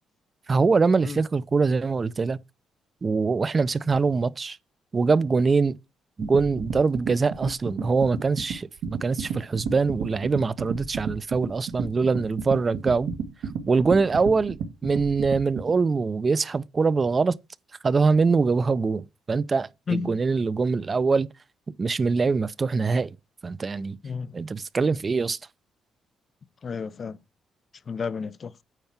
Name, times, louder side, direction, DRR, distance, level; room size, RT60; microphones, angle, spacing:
voice 1, 0.5-2.4 3.0-4.6 4.9-5.8 6.2-13.1 13.7-17.4 17.8-21.3 21.8-23.2 23.4-24.0 24.3-25.4, right 4 dB, 35° right, 0.5 m, -23 dB
sound 1, 6.2-15.7, right 6 dB, 80° right, 1.5 m, -32 dB
voice 2, 24.0-24.3 26.6-27.2 27.9-28.6, left 5 dB, 45° left, 0.5 m, -31 dB
9.0 x 4.5 x 5.8 m
cardioid pair, 90°, 0 cm